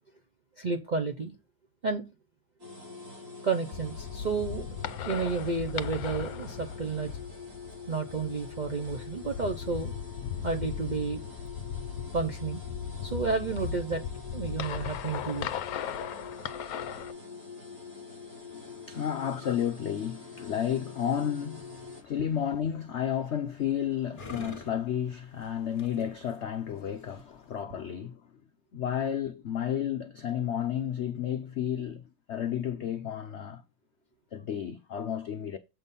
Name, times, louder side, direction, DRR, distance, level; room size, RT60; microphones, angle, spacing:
voice 1, 0.6-1.4 1.8-2.0 3.4-4.6 5.0-7.1 7.9-9.9 10.4-11.2 12.1-12.6 13.0-14.0 14.3-15.5, right 4 dB, 50° right, 0.5 m, -31 dB
sound 1, 2.6-22.0, left 4 dB, 90° right, 4.1 m, -45 dB
sound 2, 3.7-17.1, left 8 dB, 65° left, 1.0 m, -37 dB
voice 2, 18.5-28.2 28.7-32.0 32.3-33.6 34.3-35.6, left 9 dB, 90° left, 0.6 m, -32 dB
sound 3, 21.6-27.6, left 3 dB, 30° left, 1.4 m, -49 dB
7.8 x 5.3 x 4.1 m
omnidirectional pair, 2.0 m